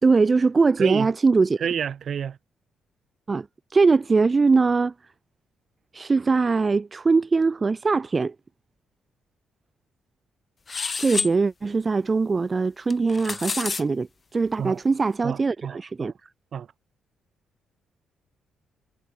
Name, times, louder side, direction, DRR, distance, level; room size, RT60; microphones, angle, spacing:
voice 1, 0.0-1.6 3.3-3.5 3.7-4.9 5.9-8.3 11.0-14.1 14.3-16.1, right 4 dB, 30° right, 1.3 m, -21 dB
voice 2, 0.8-1.1 1.6-2.4 14.6-14.8 15.2-16.1 16.5-16.7, right 8 dB, 55° right, 5.2 m, -29 dB
sound 1, 10.7-11.3 12.9-13.8, left 4 dB, 35° left, 1.9 m, -28 dB
cardioid pair, 90°, 0 cm